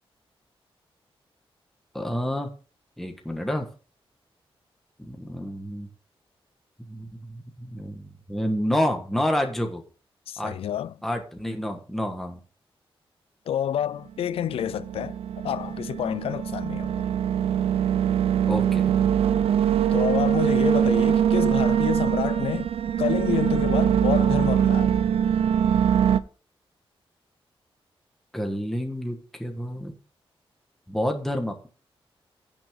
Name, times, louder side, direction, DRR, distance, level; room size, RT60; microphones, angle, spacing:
voice 1, 1.9-2.5 3.0-3.7 5.1-5.9 6.9-9.8 10.4-10.5 11.0-12.4 18.5-18.9 28.3-29.9 30.9-31.7, equal, 5° left, 1.3 m, -29 dB
voice 2, 10.3-10.9 13.5-17.1 19.9-22.7 23.0-25.0, left 10 dB, 80° left, 0.4 m, -29 dB
sound 1, 14.3-26.2, right 9 dB, 85° right, 0.6 m, -22 dB
16.0 x 6.1 x 3.7 m
wide cardioid pair, 180°, 10 cm